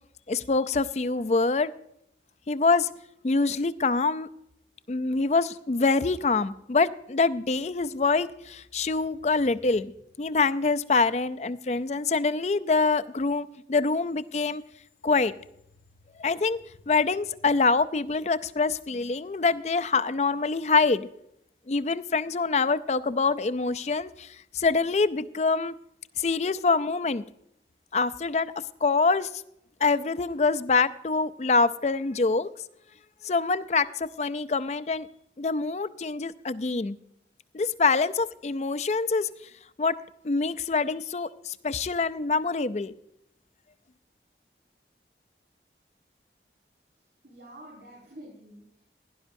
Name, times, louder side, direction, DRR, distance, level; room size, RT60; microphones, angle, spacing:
voice 1, 0.3-1.7 2.5-2.9 3.2-4.3 4.9-9.9 10.2-14.6 15.0-15.3 16.2-16.6 16.9-21.1 21.7-25.7 26.2-27.2 27.9-28.5 28.8-29.3 29.8-32.5 33.2-35.1 35.4-37.0 37.5-39.3 39.8-40.0 40.2-42.9, left 4 dB, 40° left, 14 dB, 0.4 m, -25 dB
voice 2, 46.9-49.0, right 1 dB, 70° right, -4 dB, 5.4 m, -49 dB
17.0 x 11.0 x 2.6 m, 0.77 s
head